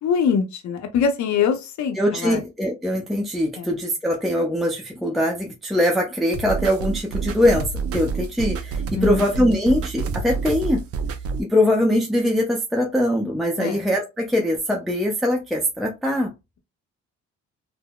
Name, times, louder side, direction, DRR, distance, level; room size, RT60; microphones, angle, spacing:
voice 1, 0.0-2.4 3.6-3.7 8.9-9.2 13.6-13.8, left 6 dB, 70° left, 0.6 m, -23 dB
voice 2, 2.0-7.7 7.9-10.8 11.4-16.3, left 1 dB, ahead, 0.5 m, -22 dB
sound 1, 6.3-11.4, right 5 dB, 50° right, 0.5 m, -28 dB
3.6 x 2.0 x 2.2 m
cardioid pair, 90°, 30 cm